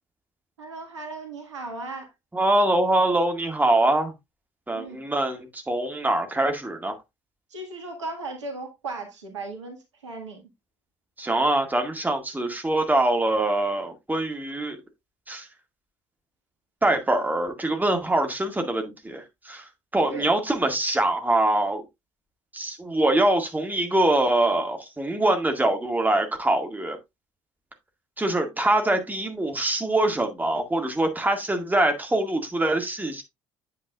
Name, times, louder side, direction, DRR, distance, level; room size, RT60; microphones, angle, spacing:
voice 1, 0.6-2.1 4.7-5.0 7.5-10.4 20.1-20.3, right 3 dB, 80° right, 1.7 m, -36 dB
voice 2, 2.3-4.1 4.7-7.0 11.2-14.8 15.3-15.5 16.8-21.8 22.5-27.0 28.2-33.2, right 1 dB, 10° right, 1.9 m, -24 dB
8.5 x 8.3 x 2.4 m
figure-of-eight pair, 50°, 15 cm